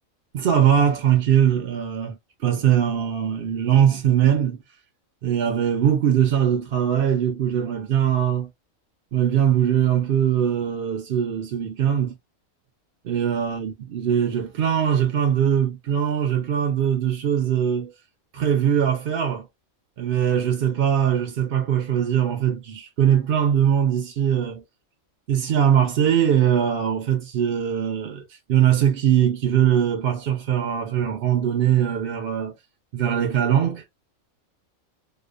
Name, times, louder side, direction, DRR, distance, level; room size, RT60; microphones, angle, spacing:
voice 1, 0.3-2.2 2.4-4.6 5.2-8.5 9.1-12.2 13.0-17.9 18.3-19.5 20.0-24.6 25.3-32.5 32.9-33.8, right 9 dB, 65° right, 0.6 m, -21 dB
2.8 x 2.2 x 2.2 m
omnidirectional pair, 1.4 m